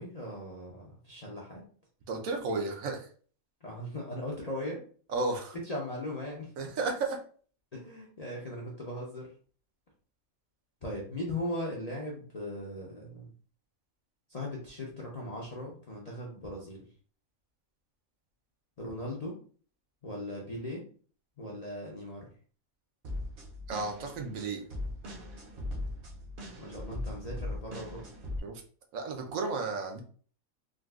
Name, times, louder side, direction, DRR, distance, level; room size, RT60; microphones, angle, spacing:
voice 1, 0.0-1.6 3.6-4.8 5.6-6.5 7.7-9.3 10.8-13.3 14.3-16.9 18.8-19.3 20.0-20.8 21.4-22.2 26.6-28.1, left 1 dB, 45° left, -3 dB, 0.5 m, -38 dB
voice 2, 2.1-3.1 5.1-5.6 6.6-7.2 23.7-24.6 28.4-28.6 28.9-30.0, right 3 dB, 75° right, 3 dB, 1.1 m, -33 dB
sound 1, 23.0-28.4, left 1 dB, 50° right, 0.8 m, -39 dB
3.7 x 2.3 x 2.3 m, 0.43 s
omnidirectional pair, 1.5 m